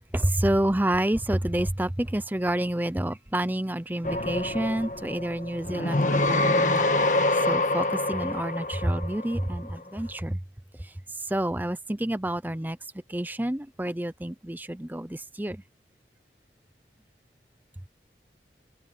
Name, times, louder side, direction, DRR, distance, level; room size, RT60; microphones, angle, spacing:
voice 1, 0.1-6.9 7.4-10.4 11.3-12.8 13.1-15.6, right 1 dB, 10° right, 0.6 m, -28 dB
sound 1, 4.0-9.7, left 2 dB, 45° left, 1.6 m, -26 dB
head